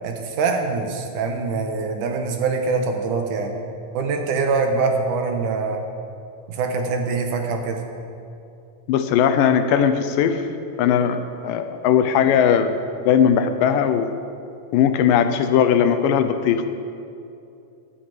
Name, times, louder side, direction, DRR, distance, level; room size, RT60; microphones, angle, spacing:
voice 1, 0.0-3.5 3.9-5.8 6.5-7.8, right 4 dB, 70° right, 4 dB, 2.6 m, -24 dB
voice 2, 8.9-10.5 10.8-12.8 13.1-14.1 14.7-16.7, left 8 dB, 80° left, 9 dB, 2.4 m, -18 dB
11.0 x 8.5 x 9.2 m, 2.6 s
omnidirectional pair, 3.9 m